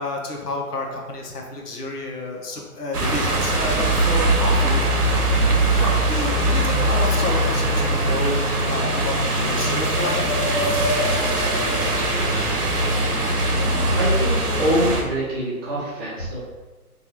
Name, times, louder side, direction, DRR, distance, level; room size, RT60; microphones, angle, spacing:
voice 1, 0.0-10.3, left 2 dB, 80° left, 0 dB, 0.8 m, -30 dB
sound 1, 2.9-15.0, right 1 dB, 80° right, 0.9 m, -21 dB
sound 2, 9.2-12.5, left 2 dB, 50° left, 1.3 m, -29 dB
voice 2, 13.9-16.4, equal, 15° right, -10 dB, 0.5 m, -24 dB
4.2 x 2.4 x 2.8 m, 1.3 s
figure-of-eight pair, 130°, 46 cm